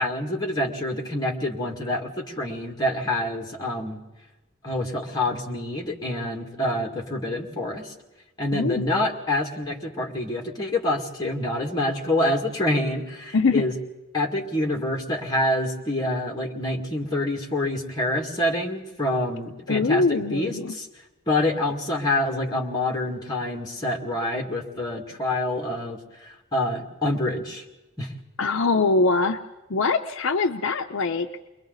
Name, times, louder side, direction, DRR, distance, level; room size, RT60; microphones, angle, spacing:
voice 1, 0.0-4.0 4.6-7.9 8.4-13.7 14.1-20.9 21.3-27.6 28.0-28.1, left 1 dB, 20° left, 0 dB, 2.2 m, -27 dB
voice 2, 8.5-8.9 13.3-13.6 19.7-20.7 28.4-29.4 29.7-31.3, left 3 dB, 60° left, 6 dB, 0.6 m, -23 dB
29.5 x 22.0 x 4.0 m, 1.1 s
head